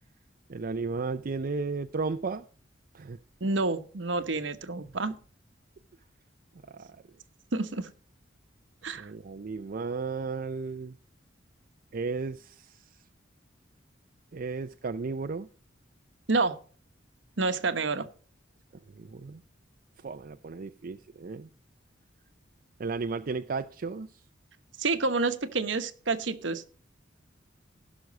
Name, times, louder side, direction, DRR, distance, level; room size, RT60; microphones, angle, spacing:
voice 1, 0.5-2.4 2.9-3.2 6.7-6.9 8.9-11.0 11.9-12.7 14.3-15.5 18.9-19.4 20.0-21.5 22.8-24.1, right 4 dB, 50° right, 0.5 m, -34 dB
voice 2, 3.4-5.2 7.5-7.9 8.8-9.1 16.3-16.6 17.4-18.1 24.8-26.6, right 3 dB, 75° right, 1.1 m, -28 dB
16.5 x 6.3 x 5.3 m
head